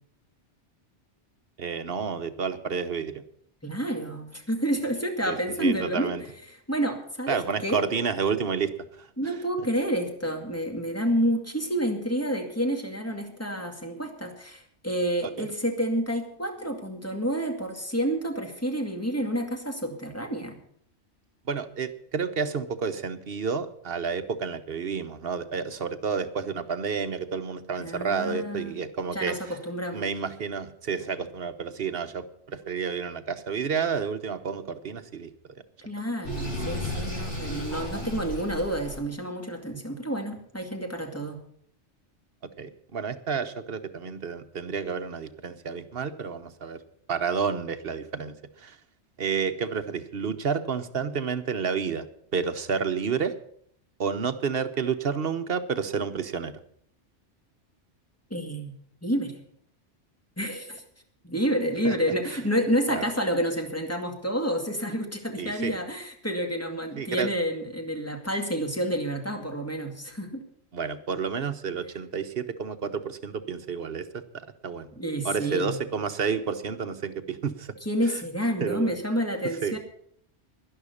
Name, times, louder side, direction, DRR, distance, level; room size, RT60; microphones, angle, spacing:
voice 1, 1.6-3.1 5.3-6.2 7.3-9.3 15.2-15.5 21.5-29.6 29.9-35.3 42.6-46.8 47.1-48.8 49.2-52.0 52.3-53.3 54.0-56.5 61.8-62.0 62.9-63.0 65.4-65.8 67.0-67.3 70.7-74.2 74.6-74.9 75.2-77.7 78.6-78.9 79.6-79.8, right 6 dB, 55° right, 10 dB, 1.1 m, -30 dB
voice 2, 3.6-6.1 6.5-7.8 9.2-20.6 27.8-28.8 29.1-30.1 35.9-41.4 58.3-58.7 59.0-59.3 60.4-60.8 61.2-70.4 75.0-75.8 77.8-79.8, equal, 10° left, 3 dB, 2.2 m, -29 dB
Sink (filling or washing), 36.2-39.0, left 1 dB, 75° left, 7.9 m, -33 dB
11.5 x 11.0 x 7.0 m, 0.65 s
omnidirectional pair, 1.2 m